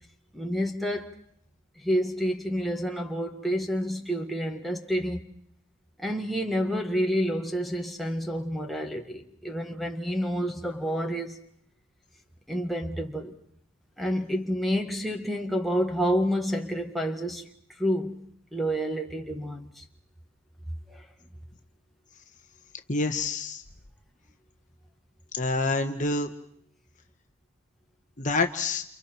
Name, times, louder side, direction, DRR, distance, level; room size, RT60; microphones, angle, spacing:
voice 1, 0.3-1.1 1.8-5.4 6.0-11.4 12.5-13.4 14.0-17.5 17.8-18.2 18.5-19.8 20.9-21.1, equal, ahead, 1.7 m, -29 dB
voice 2, 22.9-23.6 25.3-26.3 28.2-28.8, left 3 dB, 35° left, 1.3 m, -27 dB
29.5 x 29.5 x 4.5 m
head